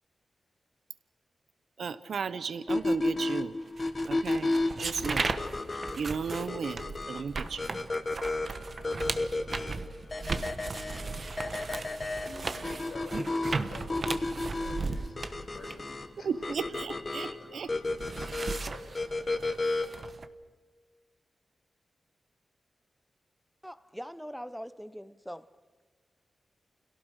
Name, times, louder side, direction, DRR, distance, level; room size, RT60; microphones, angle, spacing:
voice 1, 1.8-3.6 4.1-5.4 5.7-7.7 16.2-17.7, right 6 dB, 75° right, 0.9 m, -35 dB
sound 1, 2.7-20.1, left 2 dB, 30° left, 1.5 m, -33 dB
sound 2, 3.8-17.3 17.6-20.3, right 3 dB, 45° right, 1.2 m, -37 dB
voice 2, 10.7-16.3 17.1-17.5 18.7-18.8, left 2 dB, 85° left, 6.1 m, -50 dB
voice 3, 23.6-25.5, equal, ahead, 0.7 m, -42 dB
30.0 x 17.0 x 6.6 m
wide cardioid pair, 115°, 0 cm